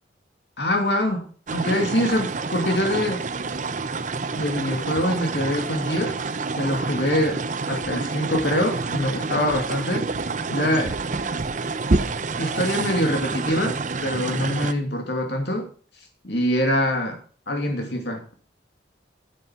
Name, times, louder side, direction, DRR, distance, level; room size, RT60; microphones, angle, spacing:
voice 1, 0.6-3.2 4.3-6.2 6.5-7.4 7.7-10.0 10.5-10.9 12.4-15.7 16.2-17.2 17.5-18.3, equal, 65° left, 3 dB, 2.6 m, -24 dB
sound 1, 1.5-14.7, right 3 dB, 40° right, 0.7 m, -28 dB
9.4 x 8.2 x 5.9 m, 0.42 s
head